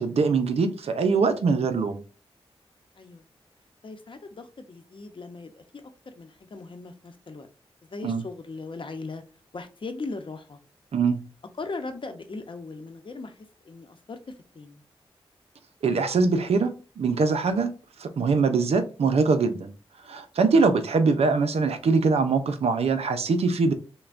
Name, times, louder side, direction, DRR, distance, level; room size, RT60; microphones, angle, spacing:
voice 1, 0.0-2.0 8.0-8.2 10.9-11.2 15.8-17.7 18.0-19.7 20.1-23.7, right 4 dB, 75° right, 0.6 m, -23 dB
voice 2, 3.8-7.5 7.9-9.2 9.5-10.6 11.6-13.4 13.6-14.2 14.5-14.8, left 3 dB, 55° left, 0.8 m, -38 dB
5.5 x 2.2 x 2.5 m
cardioid pair, 50°, 10 cm